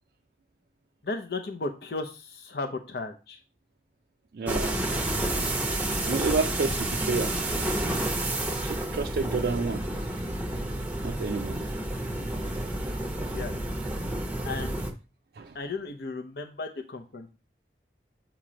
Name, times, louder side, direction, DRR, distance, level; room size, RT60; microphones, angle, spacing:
voice 1, 1.0-3.4 13.3-13.5 14.4-14.8 15.5-17.3, left 3 dB, 65° left, 0.6 m, -35 dB
voice 2, 4.3-4.8 6.0-7.3 8.6-10.1 11.0-11.6 12.5-13.0 15.3-15.6, right 4 dB, 55° right, 0.3 m, -30 dB
sound 1, 4.5-14.9, right 1 dB, 10° right, 0.6 m, -30 dB
7.3 x 2.9 x 5.0 m
head